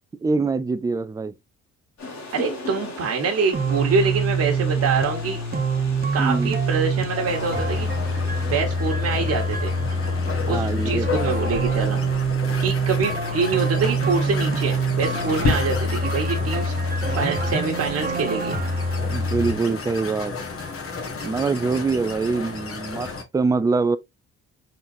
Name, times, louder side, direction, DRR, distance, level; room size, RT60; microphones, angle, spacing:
voice 1, 0.2-1.3 6.2-6.5 10.5-11.3 19.1-20.3 21.2-24.0, right 4 dB, 10° right, 0.3 m, -24 dB
sound 1, 2.0-8.6, left 2 dB, 65° left, 2.0 m, -38 dB
voice 2, 2.3-5.4 6.1-7.9 8.4-9.7 10.4-12.0 12.6-16.7 17.2-18.6, right 4 dB, 50° right, 1.4 m, -25 dB
sound 2, 3.5-19.5, right 2 dB, 30° right, 1.1 m, -25 dB
sound 3, 7.3-23.2, left 4 dB, 45° left, 1.5 m, -32 dB
4.3 x 4.0 x 2.6 m
cardioid pair, 90°, 30 cm